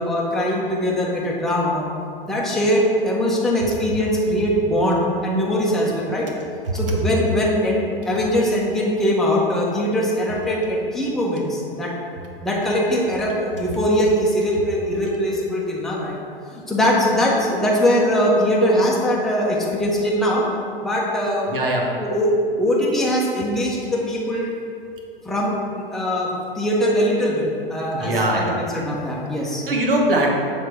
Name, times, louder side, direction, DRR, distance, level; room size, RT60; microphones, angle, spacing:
voice 1, 0.0-1.8 2.2-6.3 6.7-11.9 12.4-16.2 16.5-20.5 20.8-21.5 22.0-24.6 25.2-29.6, equal, ahead, -5 dB, 0.8 m, -21 dB
voice 2, 6.6-6.9 21.5-21.8 27.9-28.6 29.4-30.3, right 1 dB, 65° right, 0 dB, 1.2 m, -21 dB
sound 1, 13.2-16.9 17.4-17.5 17.9-20.0, left 5 dB, 30° left, 0.8 m, -38 dB
7.5 x 3.4 x 4.5 m, 2.5 s
figure-of-eight pair, 100°, 29 cm